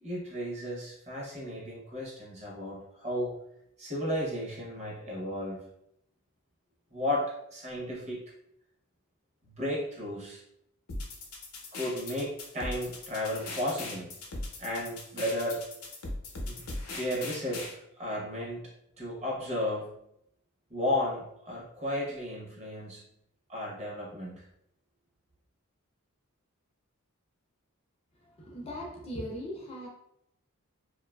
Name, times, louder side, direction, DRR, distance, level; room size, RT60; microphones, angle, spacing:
voice 1, 0.0-3.4 3.8-5.6 6.9-8.2 9.4-10.4 11.7-14.1 14.6-15.6 16.4-16.6 16.9-17.7 18.0-18.7 19.0-20.0 20.7-23.0 23.5-24.4, left 1 dB, 30° right, -3 dB, 0.7 m, -34 dB
sound 1, 10.9-17.7, left 2 dB, 85° left, 0.6 m, -39 dB
voice 2, 28.4-29.9, equal, 25° left, -1 dB, 0.4 m, -39 dB
2.5 x 2.3 x 2.2 m, 0.77 s
head